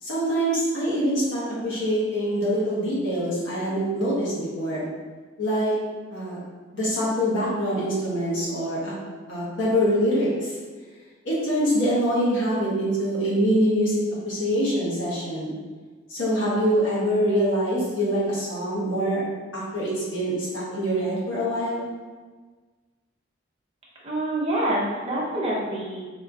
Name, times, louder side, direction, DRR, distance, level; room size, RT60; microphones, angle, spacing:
voice 1, 0.0-4.8 5.4-5.7 6.1-6.4 6.7-8.9 9.3-10.6 11.2-15.5 16.1-19.2 19.5-21.8, equal, 70° left, -7 dB, 1.3 m, -24 dB
voice 2, 24.0-26.0, right 1 dB, 30° right, -6 dB, 0.8 m, -26 dB
4.2 x 2.9 x 2.4 m, 1.4 s
head